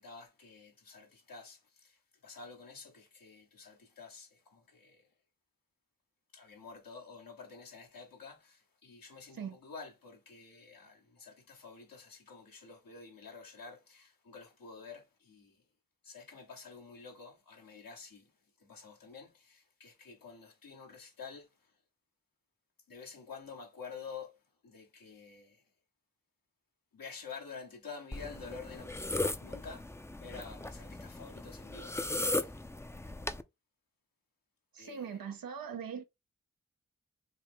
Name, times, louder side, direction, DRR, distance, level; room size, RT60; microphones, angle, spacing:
voice 1, 0.0-5.1 6.3-15.6 16.0-18.3 18.6-21.7 22.9-25.6 26.9-29.0 29.4-32.6 34.8-35.3, left 5 dB, 80° left, 1.3 m, -50 dB
sound 1, 28.1-33.4, left 2 dB, 10° left, 0.4 m, -37 dB
voice 2, 34.7-36.0, right 7 dB, 85° right, 0.6 m, -41 dB
6.0 x 2.1 x 3.6 m
cardioid pair, 40°, 34 cm